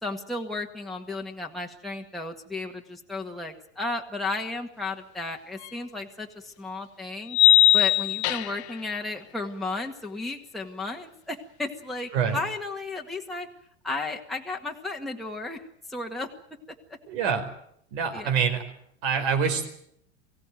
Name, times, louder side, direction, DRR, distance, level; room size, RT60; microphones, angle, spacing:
voice 1, 0.0-7.4 7.7-13.5 13.8-15.6 15.9-16.3 18.1-18.3, left 2 dB, ahead, -1 dB, 1.9 m, -34 dB
sound 1, 5.6-5.7 7.3-8.7, left 13 dB, 75° left, 1.5 m, -19 dB
voice 2, 17.1-17.5 17.9-18.6 19.0-19.7, right 6 dB, 70° right, 7 dB, 4.9 m, -25 dB
23.0 x 16.5 x 9.3 m, 0.72 s
supercardioid pair, 135°, 34 cm